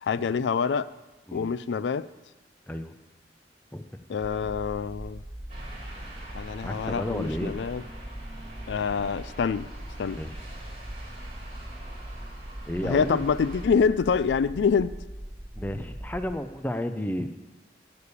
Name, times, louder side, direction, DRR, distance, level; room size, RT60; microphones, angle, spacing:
voice 1, 0.0-0.9 1.3-2.1 4.1-5.2 6.3-7.8 8.7-9.7 10.0-10.2 12.8-14.9, left 6 dB, 80° left, 17 dB, 0.4 m, -26 dB
sound 1, 4.4-16.3, right 1 dB, 15° right, 1.3 m, -41 dB
sound 2, 5.5-13.6, right 1 dB, 35° right, 2.8 m, -46 dB
voice 2, 6.6-7.5 10.1-10.4 12.7-13.2 15.6-17.3, left 1 dB, 10° left, 8 dB, 0.6 m, -32 dB
11.5 x 7.0 x 8.3 m, 1.1 s
head